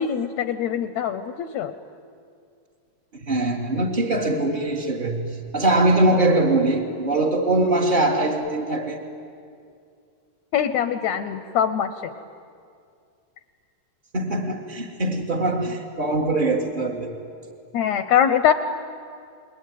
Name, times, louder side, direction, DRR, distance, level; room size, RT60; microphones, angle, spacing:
voice 1, 0.0-1.7 10.5-12.1 17.7-18.5, left 9 dB, 75° left, 11 dB, 1.8 m, -23 dB
voice 2, 3.2-9.1 14.1-17.1, right 2 dB, 30° right, -1 dB, 0.8 m, -22 dB
29.0 x 21.5 x 9.3 m, 2.4 s
omnidirectional pair, 3.9 m